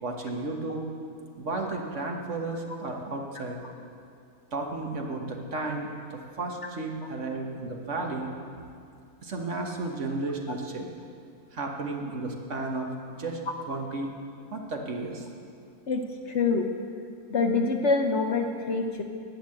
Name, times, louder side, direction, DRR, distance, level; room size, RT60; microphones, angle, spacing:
voice 1, 0.0-0.9 1.4-3.6 4.5-8.3 9.2-10.9 11.5-12.9 13.2-13.4 13.7-14.1 14.5-15.3, right 2 dB, 55° right, 1 dB, 1.5 m, -33 dB
voice 2, 15.9-16.7 17.3-19.0, left 4 dB, 55° left, 4 dB, 1.0 m, -26 dB
11.5 x 8.8 x 7.8 m, 2.4 s
omnidirectional pair, 1.6 m